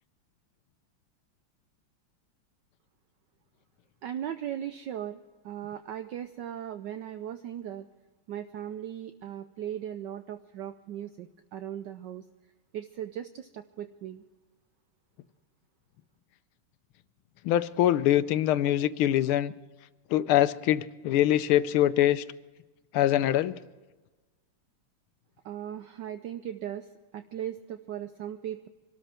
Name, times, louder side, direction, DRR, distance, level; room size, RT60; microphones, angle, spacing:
voice 1, 4.0-7.9 8.3-12.2 12.7-14.2 25.4-26.9 27.1-28.7, right 10 dB, 70° right, 9 dB, 1.1 m, -38 dB
voice 2, 17.4-19.5 20.1-22.2 22.9-23.5, left 12 dB, 80° left, 14 dB, 1.5 m, -24 dB
25.0 x 13.0 x 4.4 m, 1.2 s
omnidirectional pair, 2.3 m